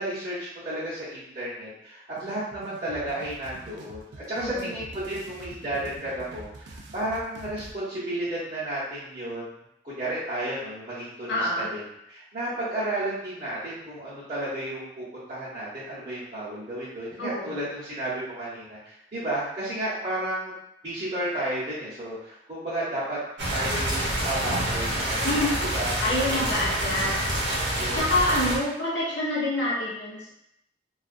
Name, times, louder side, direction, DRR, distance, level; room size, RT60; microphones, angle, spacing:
voice 1, 0.0-9.5 9.8-11.8 12.1-20.5 20.8-23.2 23.5-25.9 27.8-28.1, right 1 dB, 35° right, -13 dB, 0.9 m, -32 dB
sound 1, 2.2-7.7, right 2 dB, 70° right, 0.3 m, -45 dB
voice 2, 4.4-4.7 11.3-11.7 17.2-17.5 25.2-27.2 27.9-30.3, left 1 dB, 75° left, -6 dB, 0.8 m, -27 dB
sound 2, 23.4-28.6, right 1 dB, 90° right, 0.7 m, -27 dB
2.3 x 2.3 x 2.5 m, 0.78 s
head